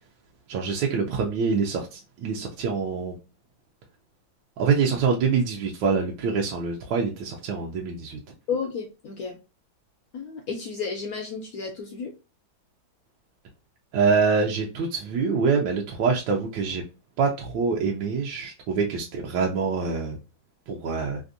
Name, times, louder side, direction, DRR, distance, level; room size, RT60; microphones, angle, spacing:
voice 1, 0.5-3.2 4.6-8.2 13.9-16.8 17.2-20.2 20.7-21.2, right 5 dB, 75° right, 1.2 m, -25 dB
voice 2, 8.5-9.4 10.1-12.1, left 5 dB, 75° left, 0.8 m, -32 dB
3.4 x 2.5 x 2.5 m
omnidirectional pair, 2.2 m